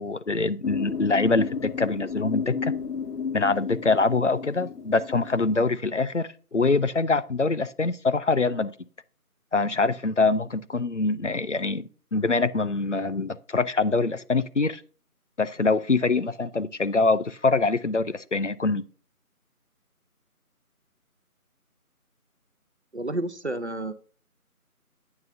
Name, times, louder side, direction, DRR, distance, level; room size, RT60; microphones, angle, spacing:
voice 1, 0.0-2.7 3.3-8.7 9.5-14.8 15.4-18.8, left 3 dB, 55° left, 0.5 m, -24 dB
sound 1, 0.6-5.6, left 5 dB, 85° left, 0.9 m, -32 dB
voice 2, 22.9-23.9, right 2 dB, 50° right, 0.8 m, -30 dB
8.9 x 6.7 x 2.6 m
figure-of-eight pair, 175°, 44 cm